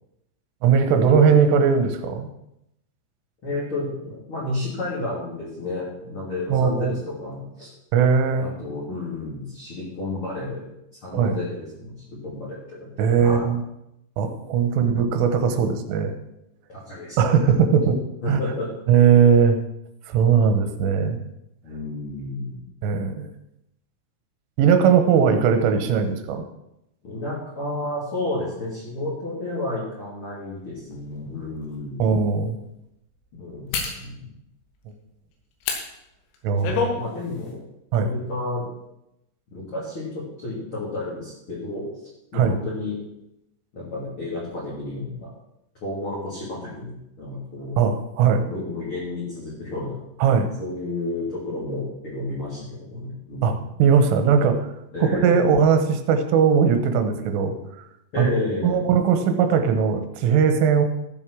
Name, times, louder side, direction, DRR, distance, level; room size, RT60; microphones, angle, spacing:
voice 1, 0.6-2.3 6.5-6.9 7.9-8.5 11.1-11.4 13.0-13.6 14.2-16.2 17.2-18.0 18.3-18.4 18.9-19.6 20.1-21.2 22.8-23.3 24.6-26.5 32.0-32.6 36.4-36.9 37.9-38.1 42.3-42.5 47.8-48.5 50.2-50.5 53.4-53.5 53.8-54.7 55.0-57.6 58.2-58.3 58.6-60.9, right 6 dB, 75° right, 7 dB, 3.5 m, -19 dB
voice 2, 3.4-7.7 8.4-10.6 11.0-12.9 13.2-13.5 14.7-15.7 16.7-18.0 18.2-18.7 21.6-22.6 27.0-32.0 33.3-34.2 36.6-37.6 37.9-38.7 39.5-41.9 42.3-43.0 43.7-45.3 45.8-47.8 48.4-50.0 50.6-53.6 54.9-55.6 58.1-58.8, left 2 dB, 30° left, -7 dB, 3.0 m, -31 dB
sound 1, 30.9-31.0 31.6-31.8 33.7-34.0 35.6-35.8 36.3-37.0 37.3-37.5, left 5 dB, 80° left, 4.4 m, -26 dB
14.5 x 7.2 x 6.2 m, 0.84 s
omnidirectional pair, 6.0 m